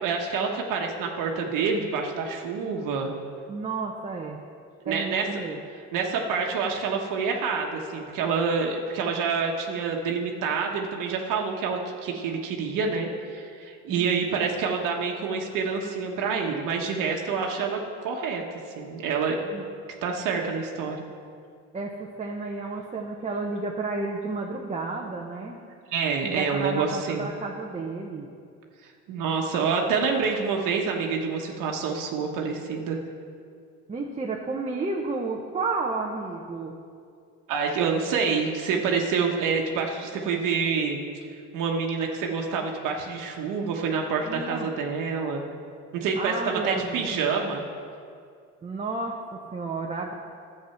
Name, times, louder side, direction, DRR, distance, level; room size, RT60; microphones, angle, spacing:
voice 1, 0.0-3.1 4.8-5.3 5.9-18.4 18.8-19.4 20.0-21.0 25.9-27.3 28.8-33.0 37.5-41.0 41.5-45.4 45.9-47.6, right 5 dB, 70° right, 1 dB, 1.3 m, -27 dB
voice 2, 3.5-4.4 4.8-5.6 13.9-14.4 19.5-19.7 21.7-25.6 26.2-28.3 33.9-36.7 44.2-44.7 46.2-47.1 48.6-50.1, right 3 dB, 20° right, -1 dB, 1.0 m, -32 dB
11.0 x 8.0 x 5.8 m, 2.3 s
supercardioid pair, 105°, 33 cm